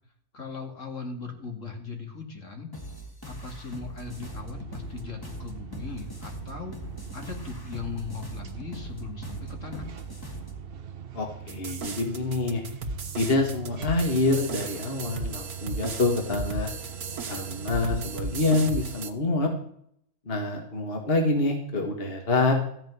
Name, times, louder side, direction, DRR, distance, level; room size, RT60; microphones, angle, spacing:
voice 1, 0.3-2.7 3.2-6.8 7.1-9.9, left 5 dB, 55° left, 3 dB, 2.6 m, -38 dB
sound 1, 2.7-10.6, equal, 15° left, 1.7 m, -41 dB
sound 2, 4.0-19.0, right 8 dB, 45° right, 0.9 m, -42 dB
voice 2, 11.1-12.6 13.1-16.7 17.3-19.5 20.3-22.5, left 2 dB, 40° left, 3 dB, 2.1 m, -26 dB
sound 3, 11.5-19.1, right 3 dB, 75° right, 1.8 m, -35 dB
15.0 x 5.8 x 9.5 m, 0.66 s
omnidirectional pair, 1.6 m